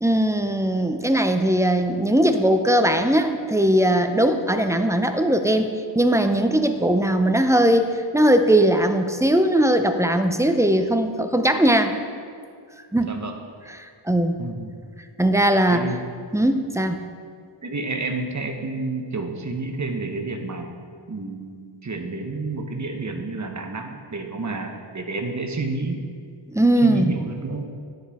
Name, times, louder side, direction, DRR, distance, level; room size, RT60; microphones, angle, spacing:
voice 1, 0.0-5.7 6.0-11.9 12.9-13.1 14.1-14.4 15.2-15.9 16.3-17.0 26.5-27.2, right 1 dB, 5° right, 7 dB, 0.4 m, -19 dB
voice 2, 13.0-13.3 14.4-14.7 15.7-16.1 17.6-20.8 21.1-21.5 21.8-26.0 26.8-27.6, right 3 dB, 35° right, 4 dB, 0.8 m, -30 dB
9.9 x 6.6 x 3.5 m, 2.2 s
wide cardioid pair, 80°, 47 cm